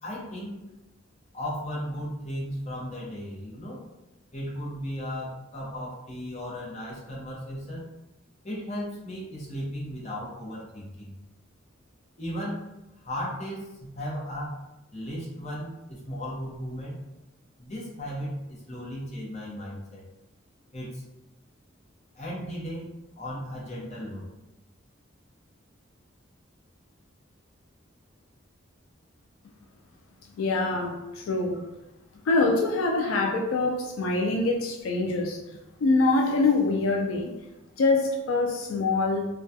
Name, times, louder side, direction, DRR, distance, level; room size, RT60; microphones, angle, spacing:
voice 1, 0.0-0.6 1.3-3.8 4.3-7.9 8.4-11.1 12.2-12.6 13.0-14.6 14.9-17.0 17.6-20.0 20.7-21.0 22.1-24.3, equal, 35° left, -5 dB, 0.7 m, -36 dB
voice 2, 30.4-31.7 32.3-35.4 35.8-37.3 37.8-39.3, left 3 dB, 80° left, 2 dB, 0.3 m, -24 dB
2.2 x 2.2 x 2.6 m, 0.98 s
head